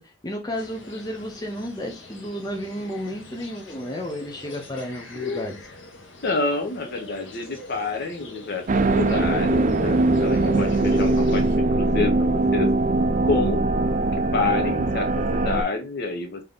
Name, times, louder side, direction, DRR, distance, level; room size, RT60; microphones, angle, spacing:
voice 1, 0.0-5.6, equal, 20° left, 1 dB, 0.6 m, -32 dB
sound 1, 0.5-11.6, left 1 dB, 80° left, 1.1 m, -42 dB
voice 2, 5.1-5.5 6.2-11.4 11.7-12.7 13.2-13.6 14.3-16.4, left 3 dB, 55° left, 5 dB, 0.7 m, -28 dB
sound 2, 8.7-15.6, right 2 dB, 40° right, 0.4 m, -21 dB
3.5 x 2.8 x 3.7 m, 0.26 s
head